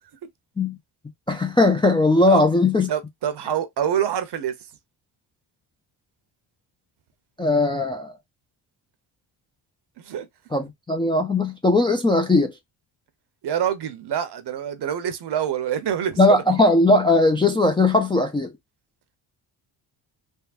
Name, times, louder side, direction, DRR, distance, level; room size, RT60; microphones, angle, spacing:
voice 1, 1.3-2.9 7.4-8.2 10.5-12.5 16.2-18.5, left 2 dB, 10° left, 0.3 m, -19 dB
voice 2, 2.9-4.5 10.0-10.3 13.4-16.4, right 9 dB, 55° right, 0.8 m, -26 dB
3.5 x 2.1 x 2.4 m
cardioid pair, 90°, 47 cm